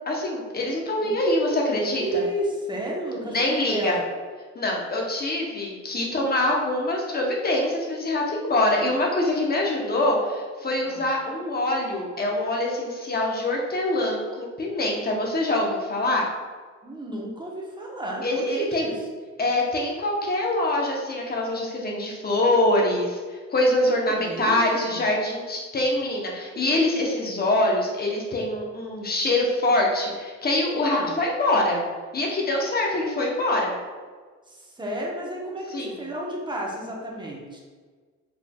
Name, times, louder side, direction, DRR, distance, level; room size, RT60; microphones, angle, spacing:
voice 1, 0.1-2.2 3.2-4.0 4.5-16.3 18.2-18.9 19.4-31.8 32.1-33.7 35.7-36.0, left 1 dB, 30° left, -1 dB, 0.9 m, -24 dB
voice 2, 2.0-4.1 10.8-11.0 16.8-19.0 23.8-25.0 30.7-31.1 34.5-37.6, right 1 dB, 15° right, -2 dB, 0.9 m, -32 dB
4.1 x 3.3 x 2.2 m, 1.5 s
cardioid pair, 90°, 30 cm